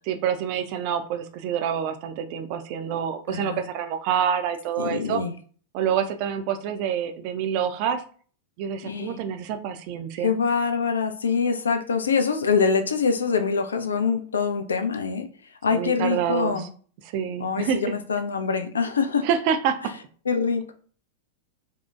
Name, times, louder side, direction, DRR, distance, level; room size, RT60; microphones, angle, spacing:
voice 1, 0.1-5.2 5.7-8.0 8.6-10.4 15.7-16.7 17.1-17.8 19.2-19.8, right 8 dB, 45° right, 7 dB, 0.3 m, -27 dB
voice 2, 3.3-3.6 4.8-5.3 8.8-9.2 10.2-15.3 15.6-16.7 17.4-19.3 20.3-20.7, left 5 dB, 70° left, 7 dB, 0.3 m, -24 dB
2.7 x 2.1 x 2.2 m, 0.44 s
figure-of-eight pair, 90°, 0 cm